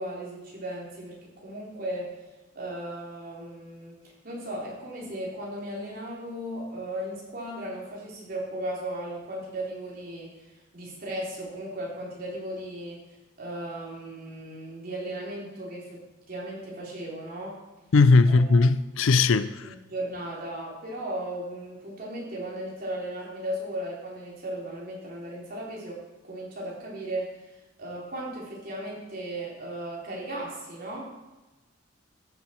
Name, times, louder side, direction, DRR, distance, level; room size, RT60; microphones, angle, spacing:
voice 1, 0.0-2.1 2.6-4.0 4.2-13.0 13.4-16.0 16.3-17.6 18.3-18.6 19.6-27.3 27.8-31.0, right 1 dB, 50° right, -4 dB, 3.6 m, -36 dB
voice 2, 17.9-19.5, left 3 dB, 85° left, 14 dB, 0.5 m, -18 dB
14.0 x 7.3 x 4.5 m, 1.1 s
head